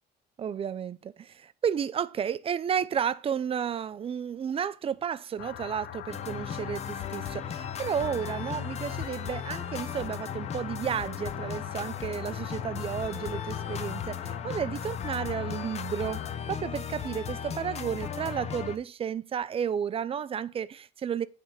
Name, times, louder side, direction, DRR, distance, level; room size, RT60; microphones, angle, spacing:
voice 1, 0.4-21.3, right 8 dB, 35° right, 0.5 m, -32 dB
bnrl lmnln rain out FB Lgc, 5.4-16.4, left 14 dB, 70° left, 0.4 m, -42 dB
sound 1, 6.1-18.8, left 7 dB, 40° left, 0.7 m, -36 dB
8.9 x 3.6 x 5.5 m
cardioid pair, 110°, 17 cm